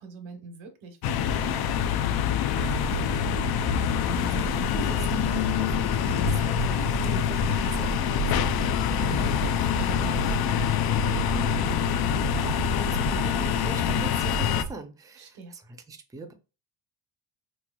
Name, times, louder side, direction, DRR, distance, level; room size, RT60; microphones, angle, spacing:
voice 1, 0.0-3.4 8.9-9.3 15.1-15.5, right 3 dB, 85° right, 1.1 m, -43 dB
sound 1, 1.0-14.6, left 9 dB, 55° left, 0.5 m, -25 dB
sound 2, 2.5-14.7, right 7 dB, 65° right, 0.7 m, -35 dB
voice 2, 4.2-15.6 15.9-16.3, right 2 dB, 10° right, 0.5 m, -42 dB
3.9 x 3.1 x 2.2 m
cardioid pair, 100°, 48 cm